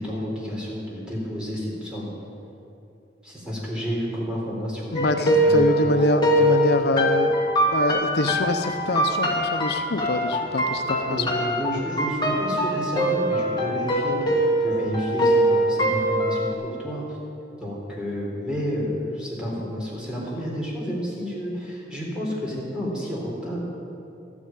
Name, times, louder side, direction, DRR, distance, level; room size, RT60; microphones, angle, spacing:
voice 1, 0.0-2.1 3.2-5.0 5.3-6.0 6.3-6.5 10.8-14.3 14.6-17.2 17.6-23.6, equal, 5° right, -5 dB, 3.8 m, -30 dB
voice 2, 4.9-7.4 7.7-11.3, left 2 dB, 65° left, 7 dB, 0.7 m, -24 dB
sound 1, 5.0-16.5, right 1 dB, 25° left, 2.0 m, -22 dB
13.0 x 9.9 x 8.9 m, 2.7 s
head